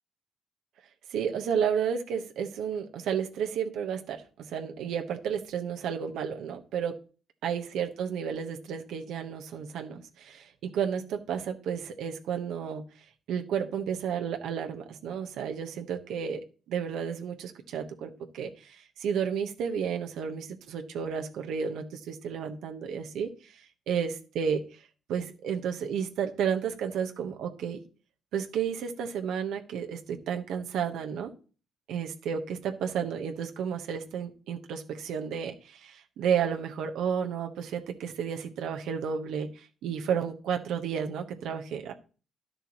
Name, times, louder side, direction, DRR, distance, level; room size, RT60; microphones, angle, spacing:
voice 1, 1.1-4.2 4.5-7.0 7.4-12.8 13.3-16.4 16.7-18.7 19.0-23.3 23.9-24.6 25.1-27.8 28.3-31.3 31.9-39.5 39.8-41.9, right 7 dB, 85° right, 5 dB, 1.1 m, -32 dB
11.0 x 6.7 x 3.0 m, 0.37 s
cardioid pair, 90°, 0 cm